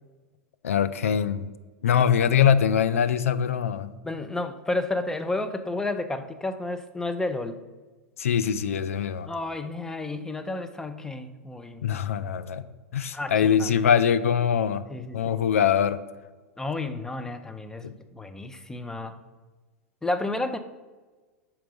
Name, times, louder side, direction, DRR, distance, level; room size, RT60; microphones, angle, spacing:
voice 1, 0.6-1.5 1.8-3.9 8.2-9.3 11.8-12.6 12.9-14.8 15.1-16.0 17.8-18.0, left 8 dB, 75° left, 0.4 m, -23 dB
voice 2, 4.0-7.6 9.3-12.1 13.1-13.7 14.9-15.4 16.6-19.2 20.0-20.6, left 2 dB, 5° left, 0.5 m, -31 dB
5.4 x 4.3 x 5.2 m
figure-of-eight pair, 95°, 8 cm